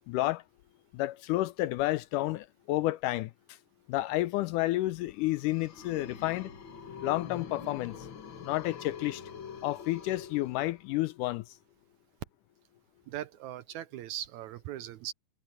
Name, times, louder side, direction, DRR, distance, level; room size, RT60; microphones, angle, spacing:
voice 1, 0.1-0.4 0.9-3.6 3.9-6.5 7.0-8.0 8.4-9.2 9.6-11.6, left 17 dB, 80° left, 1.9 m, -30 dB
sound 1, 5.1-11.0, left 6 dB, 45° left, 1.9 m, -45 dB
voice 2, 13.1-15.1, right 12 dB, 80° right, 1.7 m, -39 dB
omnidirectional pair, 4.1 m